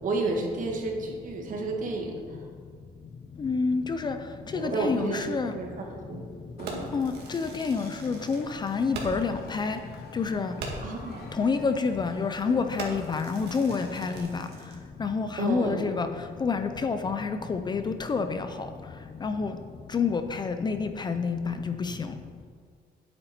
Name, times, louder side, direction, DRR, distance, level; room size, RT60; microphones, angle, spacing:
voice 1, 0.0-2.4 4.5-6.2 6.6-6.9 10.8-11.4 15.4-15.9, right 3 dB, 50° right, 1 dB, 1.7 m, -31 dB
voice 2, 3.4-4.2 4.5-5.5 6.9-9.8 10.1-10.5 11.4-14.5 15.0-16.1 16.4-18.5 19.2-19.5 19.9-22.1, left 5 dB, 25° left, 8 dB, 0.5 m, -28 dB
Cheering / Crowd, 6.6-14.2, left 5 dB, 70° left, 1.2 m, -50 dB
Fireworks, 6.7-9.4 9.7-9.8 10.2-10.3 10.6-11.0 11.6-11.8 12.2-12.4 12.8-14.9, right 3 dB, 85° right, 1.9 m, -40 dB
10.5 x 8.8 x 4.3 m, 2.1 s
cardioid pair, 145°, 17 cm